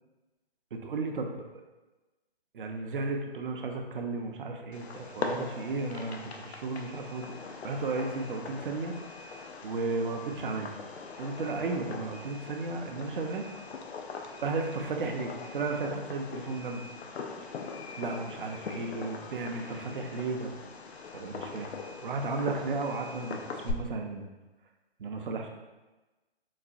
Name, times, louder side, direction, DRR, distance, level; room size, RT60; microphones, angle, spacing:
voice 1, 0.7-1.6 2.5-8.9 9.6-10.7 11.2-13.5 14.4-16.8 18.0-20.5 21.1-24.3 25.0-25.5, right 3 dB, 55° right, 3 dB, 0.5 m, -34 dB
Fireworks, 4.7-23.7, left 5 dB, 80° left, 0.5 m, -41 dB
3.9 x 2.1 x 2.5 m, 1.1 s
figure-of-eight pair, 140°, 31 cm